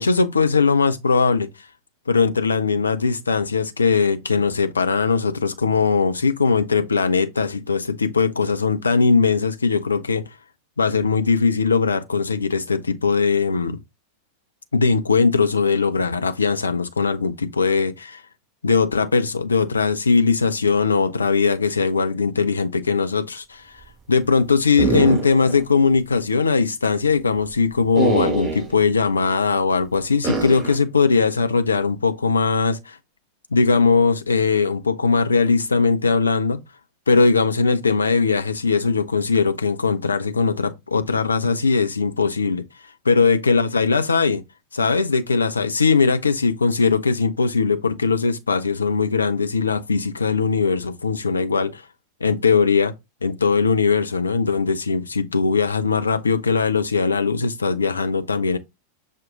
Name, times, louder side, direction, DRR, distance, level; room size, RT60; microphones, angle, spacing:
voice 1, 0.0-1.5 2.1-10.3 10.8-13.8 14.7-18.2 18.6-23.7 24.1-33.0 33.5-36.6 37.1-42.6 43.1-44.4 44.7-51.8 52.2-52.9 53.2-58.6, left 4 dB, 75° left, 0.4 m, -20 dB
sound 1, 24.8-25.6 25.9-26.0 27.9-28.7 30.2-30.8, right 3 dB, 15° right, 3.1 m, -23 dB
6.1 x 2.2 x 3.7 m
figure-of-eight pair, 90°, 0 cm